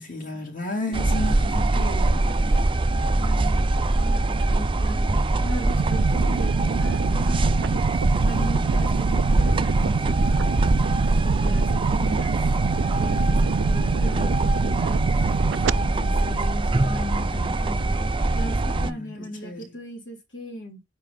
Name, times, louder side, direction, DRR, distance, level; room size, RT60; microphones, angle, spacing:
voice 1, 0.0-2.3 18.7-19.6, left 1 dB, 45° left, 3.5 m, -33 dB
sound 1, 0.9-18.9, right 2 dB, 25° right, 0.5 m, -23 dB
voice 2, 3.2-7.8 8.2-10.7 11.2-12.4 12.8-15.1 15.7-18.0 18.3-20.8, left 1 dB, 70° left, 2.7 m, -37 dB
sound 2, 5.7-15.7, right 6 dB, 80° right, 0.4 m, -27 dB
9.1 x 3.2 x 5.0 m
head